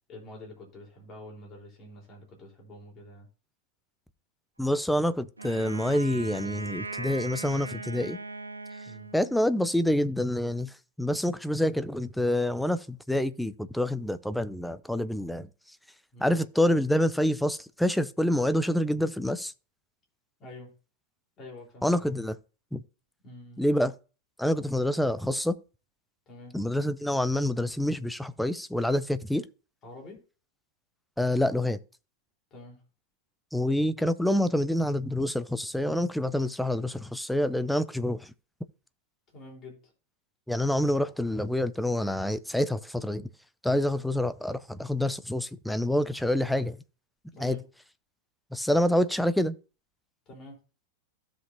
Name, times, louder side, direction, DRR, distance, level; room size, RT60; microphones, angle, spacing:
voice 1, 0.1-3.3 8.8-9.1 16.1-16.4 20.4-20.7 21.4-22.0 23.2-23.6 26.3-26.6 29.8-30.2 32.5-32.8 39.3-39.8 47.3-47.6 50.3-50.6, left 1 dB, 30° left, 3.7 m, -46 dB
voice 2, 4.6-8.2 9.1-10.7 11.0-15.5 16.2-19.5 21.8-22.4 22.7-22.8 23.6-23.9 24.4-25.6 26.5-29.4 31.2-31.8 33.5-38.3 40.5-43.3 43.6-46.8 47.4-47.6 48.5-49.5, left 1 dB, ahead, 0.5 m, -27 dB
Wind instrument woodwind instrument, 5.4-9.6, right 3 dB, 80° right, 0.8 m, -39 dB
15.5 x 5.2 x 2.7 m
figure-of-eight pair, 90°, 0 cm